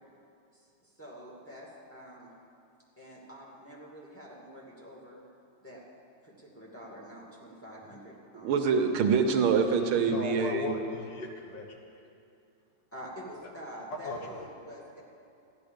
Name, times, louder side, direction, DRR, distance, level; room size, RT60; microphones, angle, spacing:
voice 1, 0.5-2.3 3.0-5.2 5.6-5.8 6.2-8.6 12.9-15.0, equal, 5° left, -4 dB, 2.0 m, -47 dB
voice 2, 8.4-10.7, right 5 dB, 80° right, 5 dB, 1.7 m, -25 dB
voice 3, 10.1-11.8 14.0-14.5, left 2 dB, 65° left, 2 dB, 1.7 m, -36 dB
14.5 x 11.0 x 5.2 m, 2.6 s
omnidirectional pair, 2.3 m